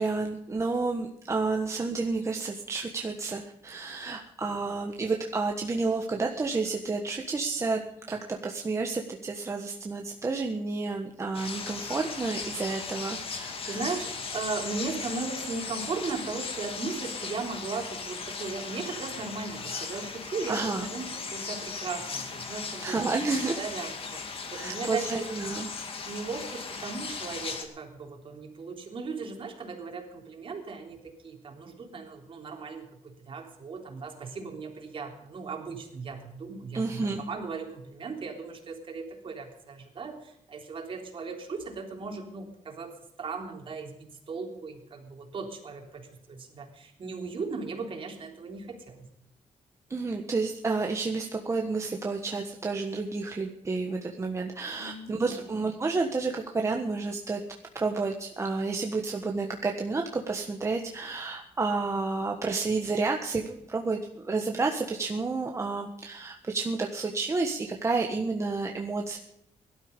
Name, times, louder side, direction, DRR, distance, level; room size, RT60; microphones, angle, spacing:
voice 1, 0.0-7.8 8.1-13.8 19.9-20.0 20.5-20.9 22.8-23.6 24.6-25.7 36.7-37.2 49.9-57.4 57.7-69.2, right 3 dB, 20° right, 2 dB, 1.4 m, -30 dB
sound 1, 11.3-27.6, left 5 dB, 45° left, 2.6 m, -37 dB
voice 2, 13.6-25.3 26.0-49.1 54.7-55.6, right 4 dB, 45° right, 2 dB, 3.5 m, -37 dB
18.0 x 12.5 x 5.3 m, 0.79 s
cardioid pair, 135°, 13 cm